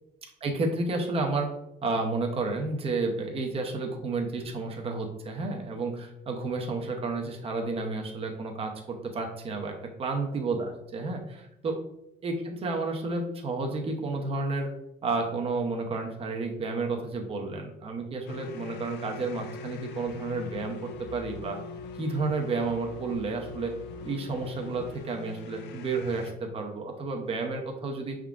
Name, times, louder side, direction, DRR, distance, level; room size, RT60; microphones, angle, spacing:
voice 1, 0.4-1.5 1.8-11.8 12.2-14.7 15.0-21.6 21.9-23.7 24.0-28.2, right 3 dB, 35° right, 3 dB, 0.7 m, -31 dB
sound 1, 18.3-26.3, left 5 dB, 80° left, 0.5 m, -42 dB
5.6 x 3.6 x 2.4 m, 0.83 s
cardioid pair, 110°, 17 cm